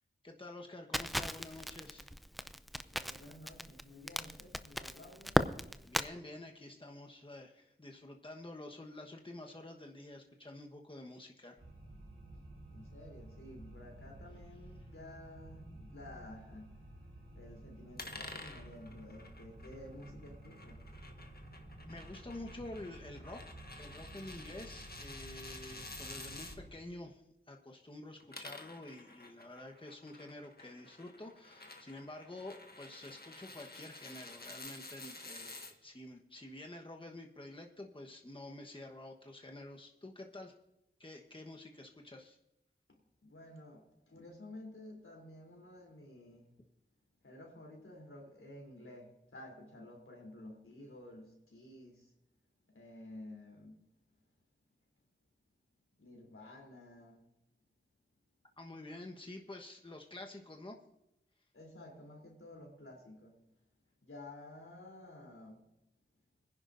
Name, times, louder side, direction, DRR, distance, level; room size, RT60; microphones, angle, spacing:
voice 1, 0.2-2.1 5.8-11.6 21.8-23.4 23.8-27.2 27.5-40.5 41.0-42.4 58.6-60.8, left 1 dB, 25° left, 1.2 m, -49 dB
Crackle, 0.9-6.1, equal, ahead, 0.6 m, -36 dB
voice 2, 2.8-5.4 12.7-16.8 17.3-20.8 42.9-46.5 47.2-52.1 52.7-53.9 56.0-57.2 61.5-63.4 64.0-65.7, left 1 dB, 85° left, 3.4 m, -52 dB
sound 1, 11.6-26.7, right 1 dB, 90° right, 3.8 m, -52 dB
sound 2, 18.0-26.6 28.1-35.7, left 2 dB, 50° left, 1.5 m, -51 dB
22.5 x 10.5 x 2.6 m
wide cardioid pair, 40°, 21 cm